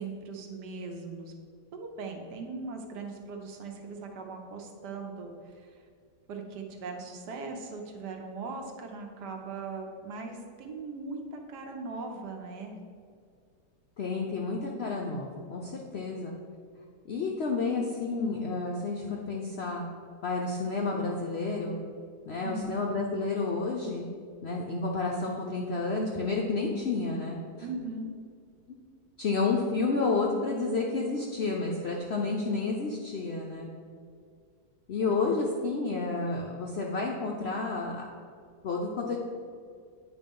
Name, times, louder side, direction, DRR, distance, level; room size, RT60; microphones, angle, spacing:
voice 1, 0.0-1.3 1.7-5.8 6.3-12.8 22.4-22.8 27.6-28.1 35.0-35.1, right 3 dB, 80° right, 3 dB, 1.4 m, -39 dB
voice 2, 14.0-16.3 17.1-19.8 20.2-21.8 22.3-24.0 24.4-27.4 29.2-33.7 34.9-38.0 38.6-39.2, left 3 dB, 70° left, -1 dB, 0.6 m, -30 dB
8.9 x 3.1 x 5.3 m, 2.2 s
omnidirectional pair, 1.8 m